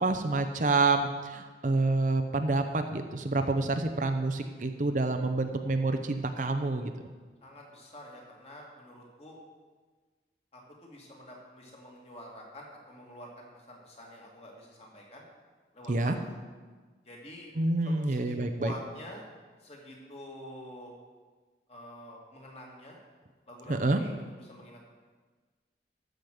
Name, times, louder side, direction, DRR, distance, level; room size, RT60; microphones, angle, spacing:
voice 1, 0.0-6.9 15.9-16.2 17.6-18.7 23.7-24.0, right 3 dB, 45° right, 7 dB, 0.7 m, -28 dB
voice 2, 7.4-9.4 10.5-15.3 15.7-16.4 17.0-17.5 17.8-19.2 19.6-20.9 21.7-23.0 23.5-24.8, left 1 dB, 35° left, -2 dB, 2.3 m, -47 dB
13.0 x 5.3 x 7.7 m, 1.4 s
head